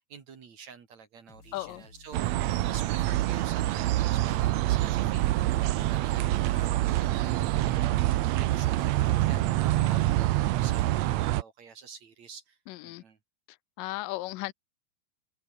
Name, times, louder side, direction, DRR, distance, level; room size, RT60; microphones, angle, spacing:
voice 1, 0.1-12.6 12.8-13.2, right 6 dB, 55° right, 3.7 m, -48 dB
sound 1, 1.3-10.0, left 3 dB, 40° left, 5.6 m, -55 dB
voice 2, 1.5-1.8 12.7-13.0 13.8-14.5, left 19 dB, 85° left, 2.3 m, -35 dB
sound 2, 2.1-11.4, right 15 dB, 75° right, 1.7 m, -26 dB
omnidirectional pair, 3.8 m